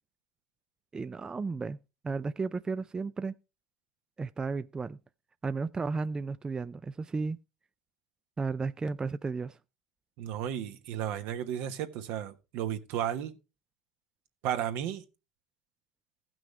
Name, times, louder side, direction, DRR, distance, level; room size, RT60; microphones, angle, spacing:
voice 1, 0.9-1.8 2.0-3.3 4.2-5.0 5.4-7.4 8.4-9.6, right 4 dB, 20° right, 0.4 m, -33 dB
voice 2, 10.2-13.4 14.4-15.0, right 10 dB, 70° right, 1.2 m, -33 dB
15.5 x 6.1 x 3.2 m
hypercardioid pair, 80°, 4 cm